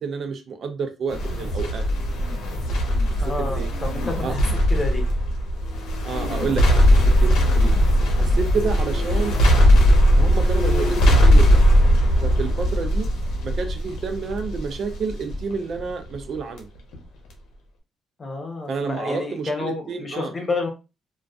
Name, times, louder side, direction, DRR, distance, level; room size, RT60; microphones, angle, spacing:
voice 1, 0.0-1.8 3.4-3.7 4.2-4.5 6.0-6.8 7.2-7.7 8.2-9.4 10.2-11.6 12.2-13.1 13.4-16.7 18.7-20.3, right 5 dB, 60° right, 7 dB, 0.5 m, -29 dB
sound 1, 1.1-16.6 16.9-17.0, equal, 85° left, 0.7 m, -19 dB
voice 2, 3.2-4.4 4.7-5.0 18.2-20.7, left 3 dB, 35° left, 3 dB, 0.8 m, -29 dB
2.4 x 2.3 x 2.3 m, 0.28 s
cardioid pair, 90°, 0 cm